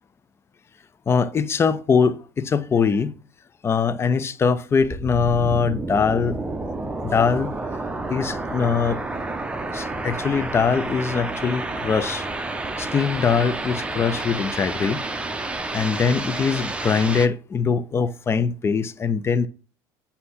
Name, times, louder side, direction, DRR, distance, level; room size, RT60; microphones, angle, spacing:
voice 1, 1.1-3.2 3.6-6.4 7.0-7.5 8.1-9.0 9.7-12.2 12.8-15.0 15.7-19.5, left 6 dB, 25° left, 0.5 m, -22 dB
sound 1, 4.8-17.3, right 2 dB, 10° right, 0.7 m, -30 dB
7.7 x 2.8 x 5.6 m
supercardioid pair, 100°, 10 cm